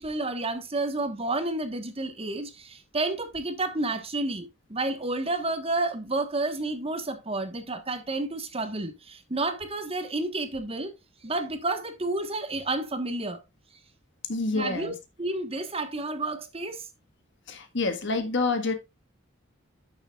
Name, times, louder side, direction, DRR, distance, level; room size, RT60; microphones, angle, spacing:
voice 1, 0.0-10.9 11.2-13.4 14.5-16.8, right 2 dB, 30° right, 1.4 m, -30 dB
voice 2, 14.3-14.9 17.5-18.7, left 3 dB, 60° left, 1.7 m, -27 dB
11.5 x 7.0 x 2.4 m
head